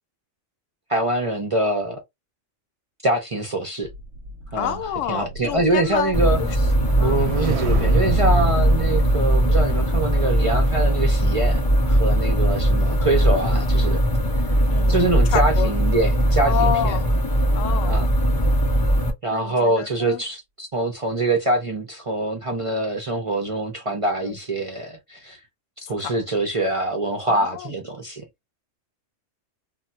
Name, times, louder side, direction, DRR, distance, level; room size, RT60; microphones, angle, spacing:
voice 1, 0.9-2.0 3.0-3.9 4.5-4.8 5.1-6.7 7.0-11.6 11.9-14.0 14.9-17.0 17.9-18.1 19.2-25.4 25.8-28.2, right 2 dB, 45° right, 0.4 m, -24 dB
sound 1, 3.8-14.2 14.6-14.9, right 3 dB, 70° right, 0.8 m, -32 dB
voice 2, 4.5-6.1 6.4-6.5 6.9-7.2 14.7-15.7 16.4-17.1 17.5-18.0 19.3-20.2 24.2-24.4 26.0-26.2 27.3-27.8, left 10 dB, 85° left, 0.9 m, -28 dB
sound 2, 6.1-19.1, equal, 35° left, 0.3 m, -20 dB
2.2 x 2.2 x 3.8 m
omnidirectional pair, 1.3 m